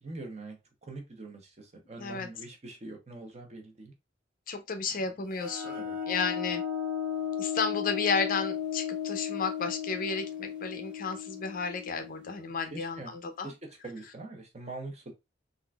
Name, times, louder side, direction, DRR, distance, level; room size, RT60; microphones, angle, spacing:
voice 1, 0.0-3.9 5.0-5.1 5.8-6.0 12.7-13.1 13.4-13.5 13.8-15.1, right 2 dB, 40° right, 0.8 m, -43 dB
voice 2, 1.9-2.3 4.5-6.6 7.4-13.5, left 4 dB, 50° left, 0.5 m, -33 dB
sound 1, 5.3-12.8, left 8 dB, 5° right, 1.0 m, -35 dB
3.8 x 2.5 x 2.2 m
head